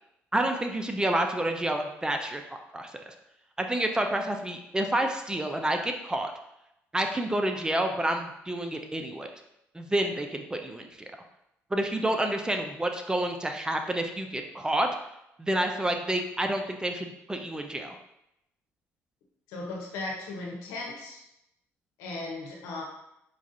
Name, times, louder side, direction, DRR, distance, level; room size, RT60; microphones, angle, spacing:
voice 1, 0.3-2.4 2.7-3.1 3.6-6.3 6.9-9.3 9.7-11.1 11.7-14.9 15.4-18.0, right 1 dB, 15° right, 4 dB, 0.4 m, -29 dB
voice 2, 19.5-21.2 22.0-22.8, left 2 dB, 85° left, -1 dB, 0.9 m, -36 dB
4.6 x 2.4 x 2.7 m, 0.85 s
supercardioid pair, 75°, 6 cm